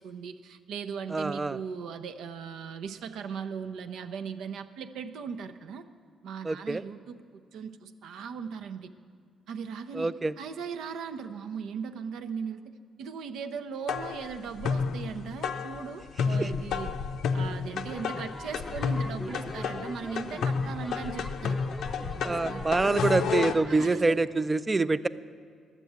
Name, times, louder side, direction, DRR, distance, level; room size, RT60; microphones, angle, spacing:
voice 1, 0.0-5.8 6.2-8.9 9.5-12.6 13.0-16.9 17.3-21.6 22.2-23.0 23.7-24.0, right 6 dB, 80° right, 8 dB, 0.6 m, -38 dB
voice 2, 1.1-1.6 6.4-6.8 9.9-10.3 16.4-16.5 22.2-25.1, right 3 dB, 20° right, 14 dB, 0.4 m, -26 dB
sound 1, 13.9-23.5, left 5 dB, 75° left, 0.5 m, -31 dB
sound 2, 17.9-23.9, equal, ahead, 0.7 m, -42 dB
12.5 x 7.4 x 8.1 m, 2.1 s
cardioid pair, 90°, 0 cm